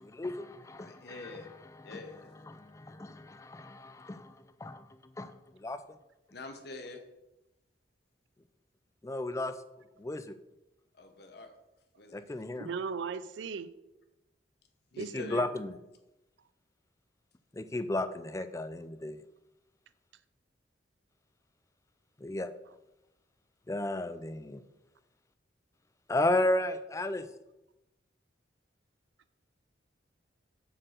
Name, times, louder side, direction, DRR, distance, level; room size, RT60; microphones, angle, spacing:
voice 1, 0.0-1.1 1.9-2.0 2.5-4.9 5.2-5.8 9.0-9.5 10.0-10.4 12.1-12.7 15.0-15.7 17.5-19.2 22.2-22.5 23.7-24.6 26.1-27.3, left 1 dB, 15° left, 11 dB, 0.4 m, -33 dB
voice 2, 0.8-1.5 1.8-2.4 6.3-7.0 10.9-11.5 12.0-12.2 14.9-15.4, left 3 dB, 55° left, 5 dB, 1.1 m, -46 dB
voice 3, 12.6-13.7 15.0-15.5, right 5 dB, 70° right, 15 dB, 0.4 m, -37 dB
7.4 x 4.5 x 6.5 m, 0.97 s
head